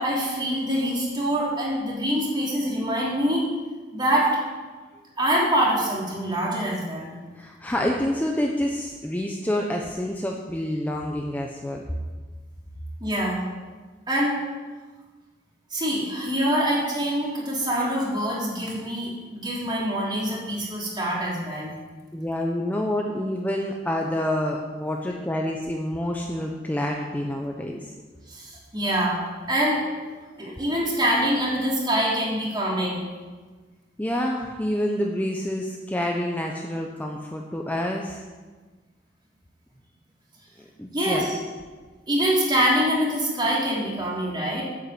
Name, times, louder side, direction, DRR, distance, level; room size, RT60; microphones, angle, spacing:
voice 1, 0.0-3.4 3.9-4.3 5.2-7.1 13.0-13.4 14.1-14.4 15.7-21.7 28.3-29.2 29.5-29.8 30.4-33.0 40.9-41.4 42.1-44.6, equal, 25° right, -4 dB, 3.4 m, -25 dB
voice 2, 7.4-11.8 22.1-27.9 34.0-38.2 40.8-41.3, left 1 dB, 10° left, 0 dB, 0.8 m, -28 dB
9.4 x 8.5 x 7.8 m, 1.4 s
head